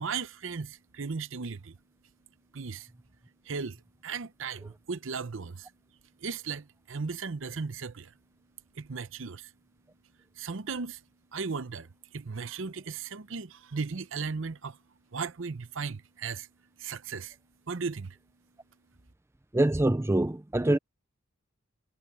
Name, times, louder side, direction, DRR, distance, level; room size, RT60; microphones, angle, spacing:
voice 1, 0.0-1.8 2.5-2.9 3.4-5.7 6.2-8.1 8.7-9.5 10.4-11.0 11.3-14.8 15.1-16.5 16.8-17.4 17.7-18.2, right 5 dB, 60° right, 0.7 m, -36 dB
voice 2, 19.5-20.8, right 1 dB, 10° right, 0.4 m, -24 dB
head